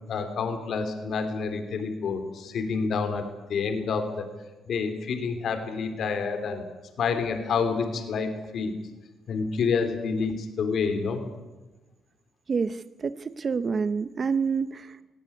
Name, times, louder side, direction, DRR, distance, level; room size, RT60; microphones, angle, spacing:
voice 1, 0.1-4.3 4.7-6.7 7.0-8.7 9.3-11.2, left 5 dB, 65° left, 7 dB, 3.2 m, -28 dB
voice 2, 12.5-15.0, right 5 dB, 40° right, 13 dB, 0.7 m, -28 dB
18.0 x 17.5 x 9.6 m, 1.1 s
cardioid pair, 90°, 0 cm